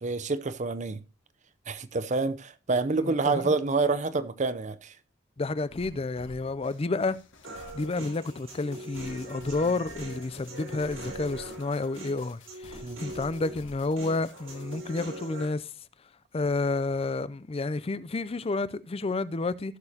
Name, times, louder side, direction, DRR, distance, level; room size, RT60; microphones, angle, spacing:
voice 1, 0.0-1.0 1.7-4.9 12.8-13.0, right 3 dB, 40° right, 0.6 m, -28 dB
voice 2, 3.0-3.5 5.4-7.2 7.7-15.7 16.3-19.8, left 3 dB, 30° left, 0.4 m, -30 dB
sound 1, 5.7-14.8, left 1 dB, 70° left, 1.9 m, -51 dB
Human voice, 7.4-15.5, right 1 dB, 85° right, 4.0 m, -42 dB
15.5 x 6.9 x 2.8 m
head